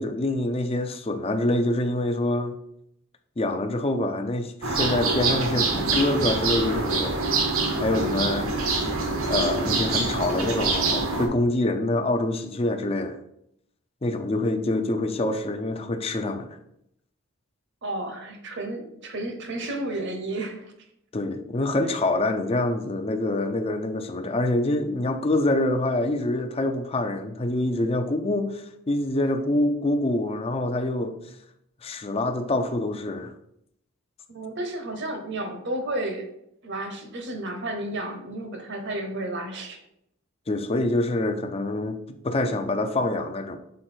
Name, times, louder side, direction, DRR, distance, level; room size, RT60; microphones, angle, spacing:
voice 1, 0.0-2.6 3.4-7.3 7.8-8.9 9.3-13.2 14.0-16.5 21.1-31.2 31.8-33.3 40.5-42.0 42.2-43.6, left 2 dB, 30° left, 7 dB, 0.5 m, -26 dB
sound 1, 4.6-11.3, right 3 dB, 75° right, 1.2 m, -25 dB
voice 2, 17.8-20.7 34.3-36.3 36.6-39.8, right 1 dB, 55° right, 5 dB, 1.1 m, -32 dB
6.4 x 4.2 x 4.4 m, 0.76 s
head